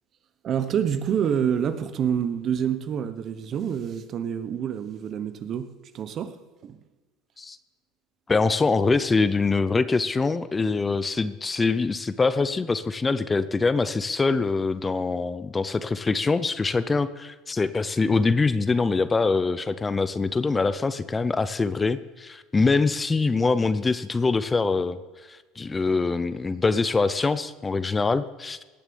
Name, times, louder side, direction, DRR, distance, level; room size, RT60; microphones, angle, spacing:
voice 1, 0.4-5.7 5.9-6.3 6.6-6.8, right 8 dB, 45° right, 11 dB, 1.0 m, -27 dB
voice 2, 8.3-25.0 25.3-28.6, left 4 dB, 20° left, 14 dB, 0.6 m, -24 dB
18.0 x 6.9 x 7.0 m, 1.2 s
supercardioid pair, 105°, 0 cm